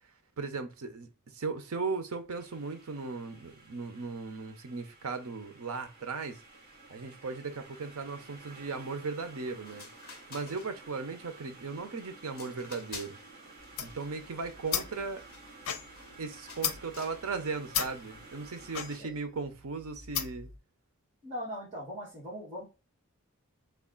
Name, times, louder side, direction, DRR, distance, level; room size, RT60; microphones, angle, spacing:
voice 1, 0.4-6.4 6.9-9.9 10.3-13.2 13.8-15.2 16.2-20.5, right 4 dB, 80° right, 0.7 m, -37 dB
sound 1, 2.3-19.0, right 3 dB, 45° right, 1.5 m, -53 dB
sound 2, 9.4-9.5 9.7-11.0 11.4-11.8 12.3-13.3 13.6-16.2 16.5-17.2 17.6-18.0 18.9-19.2, left 4 dB, 45° left, 1.2 m, -50 dB
sound 3, 13.6-20.6, left 8 dB, 85° left, 0.6 m, -37 dB
voice 2, 21.2-22.6, equal, 30° right, 1.6 m, -40 dB
3.4 x 2.4 x 3.7 m
head